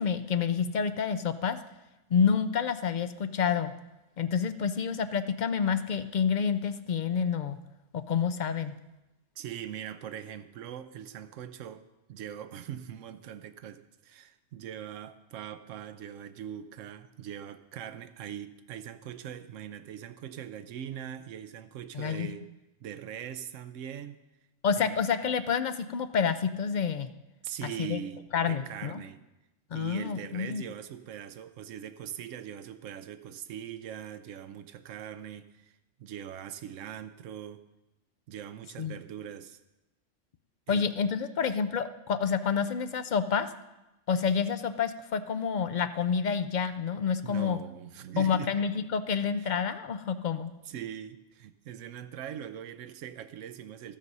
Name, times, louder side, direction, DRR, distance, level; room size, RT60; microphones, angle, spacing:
voice 1, 0.0-1.6 2.1-3.7 4.2-7.6 7.9-8.7 21.9-22.3 24.6-27.1 27.6-28.0 28.3-29.0 29.7-30.6 38.8-39.0 40.7-43.5 44.1-47.6 48.2-50.5, left 6 dB, 60° left, 11 dB, 0.4 m, -28 dB
voice 2, 9.4-22.5 22.8-24.2 24.8-24.9 27.4-29.2 29.7-37.6 38.3-39.6 40.7-40.8 47.2-48.5 49.4-49.6 50.6-54.0, right 9 dB, 90° right, 10 dB, 1.0 m, -41 dB
12.5 x 7.3 x 5.4 m, 0.99 s
omnidirectional pair, 1.3 m